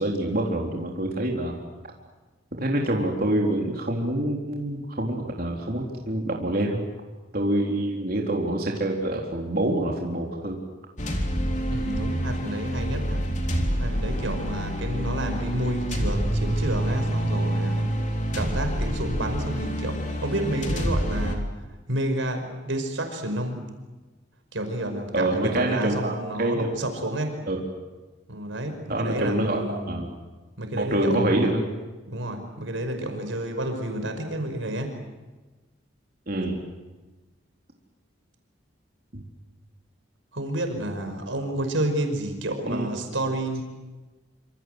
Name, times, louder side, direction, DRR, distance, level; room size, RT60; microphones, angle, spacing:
voice 1, 0.0-1.6 2.6-6.8 7.3-10.6 25.1-26.7 27.5-27.6 28.9-30.2 30.7-31.6 36.3-36.6 39.1-39.2 42.6-42.9, right 1 dB, 50° right, 0 dB, 3.9 m, -26 dB
sound 1, 11.0-21.4, equal, 40° left, 3.7 m, -27 dB
voice 2, 11.7-13.2 13.8-17.9 18.3-21.4 21.9-23.6 24.5-27.3 28.3-30.0 30.6-31.5 32.1-34.9 40.3-43.6, right 1 dB, 85° right, 6 dB, 5.4 m, -30 dB
27.0 x 27.0 x 8.0 m, 1.2 s
head